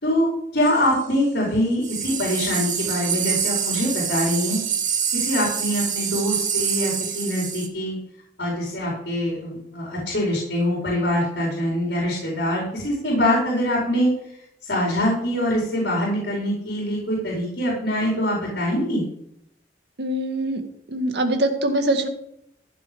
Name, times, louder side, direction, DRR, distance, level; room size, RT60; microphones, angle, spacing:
voice 1, 0.0-4.6 5.1-8.0 8.4-14.1 14.6-19.1, equal, 75° left, -3 dB, 4.8 m, -24 dB
sound 1, 0.6-1.0 1.8-7.7, right 7 dB, 45° right, 1.9 m, -26 dB
voice 2, 20.0-20.6 20.9-22.1, right 1 dB, 75° right, 5 dB, 1.9 m, -23 dB
15.0 x 7.0 x 5.4 m, 0.75 s
head